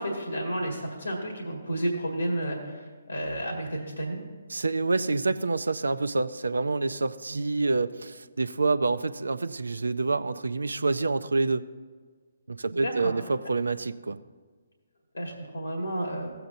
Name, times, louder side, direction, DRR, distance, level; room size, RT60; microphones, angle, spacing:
voice 1, 0.0-4.2 7.3-7.4 12.7-13.1 15.1-16.3, right 1 dB, 85° left, 1 dB, 1.8 m, -31 dB
voice 2, 4.5-11.6 12.5-14.2, right 3 dB, 75° right, 13 dB, 0.4 m, -27 dB
16.0 x 7.8 x 2.6 m, 1.5 s
figure-of-eight pair, 135°, 0 cm